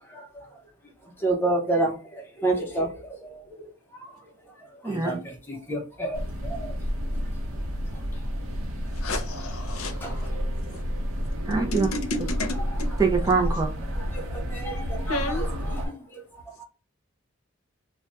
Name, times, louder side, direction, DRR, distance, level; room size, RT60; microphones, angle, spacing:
voice 1, 0.1-0.6 1.2-3.4 3.9-4.1 4.6-6.7 8.1-8.2 10.0-10.4 13.2-13.3 13.9-16.2 16.6-16.7, right 2 dB, 10° left, 0.7 m, -30 dB
voice 2, 4.8-5.2 11.5-11.9 13.0-13.7, right 4 dB, 15° right, 0.4 m, -23 dB
sound 1, 6.1-15.9, equal, 80° right, 0.7 m, -30 dB
voice 3, 9.0-10.3 10.7-10.8 11.5-12.9 15.1-15.5, left 2 dB, 85° left, 0.6 m, -32 dB
2.3 x 2.2 x 3.8 m
head